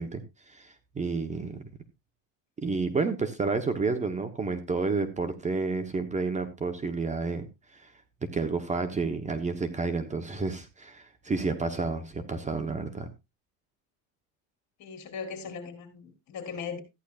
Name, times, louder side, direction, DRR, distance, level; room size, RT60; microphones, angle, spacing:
voice 1, 0.0-1.6 2.6-7.5 7.7-7.9 8.3-13.1, right 4 dB, 20° right, 1.0 m, -30 dB
voice 2, 14.8-16.8, left 6 dB, 50° left, 3.8 m, -38 dB
14.5 x 10.0 x 2.5 m
cardioid pair, 125°, 37 cm